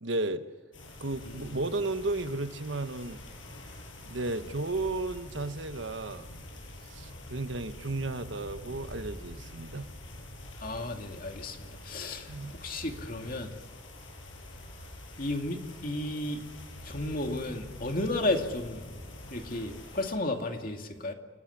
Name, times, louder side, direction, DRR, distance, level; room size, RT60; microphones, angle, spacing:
voice 1, 0.0-0.4 1.0-3.2 4.1-6.3 6.9-9.9 12.3-12.6, right 2 dB, 70° right, 10 dB, 1.3 m, -33 dB
sound 1, 0.7-20.1, left 1 dB, 75° left, 7.3 m, -46 dB
voice 2, 10.6-13.5 15.2-16.4 16.8-18.9 19.3-21.1, left 2 dB, 45° left, 4 dB, 2.6 m, -33 dB
29.0 x 18.0 x 10.0 m, 1.3 s
head